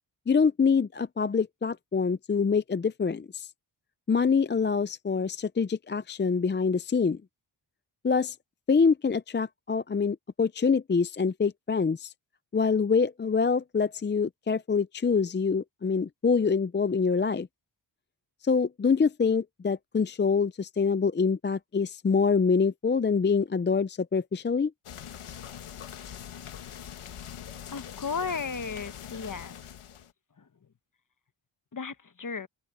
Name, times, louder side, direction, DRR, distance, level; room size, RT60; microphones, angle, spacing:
voice 1, 0.3-3.5 4.1-7.2 8.0-8.4 8.7-12.1 12.5-17.5 18.4-24.7, left 5 dB, 25° left, 0.5 m, -25 dB
sound 1, 24.9-30.1, left 9 dB, 85° left, 1.4 m, -43 dB
voice 2, 27.7-29.6 30.4-30.5 31.7-32.5, left 5 dB, 40° left, 1.2 m, -34 dB
open air
cardioid pair, 70°, 49 cm